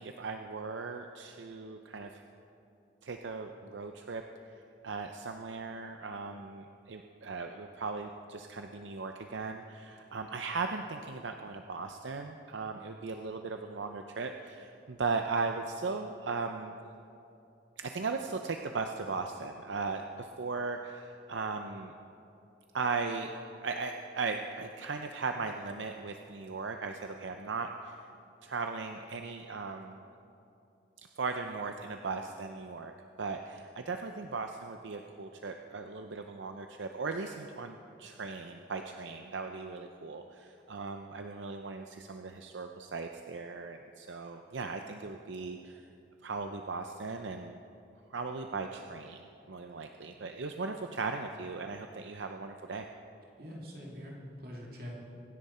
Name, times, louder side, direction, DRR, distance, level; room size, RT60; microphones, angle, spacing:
voice 1, 0.0-2.2 3.0-4.2 4.5-16.7 17.8-21.9 22.7-23.3 23.6-28.1 28.4-30.0 31.2-32.9 33.2-45.9 46.2-47.6 48.1-49.2 49.5-52.8, right 4 dB, 85° right, 5 dB, 0.6 m, -38 dB
voice 2, 53.4-55.0, equal, 55° right, -3 dB, 2.3 m, -44 dB
24.0 x 10.5 x 4.3 m, 2.8 s
head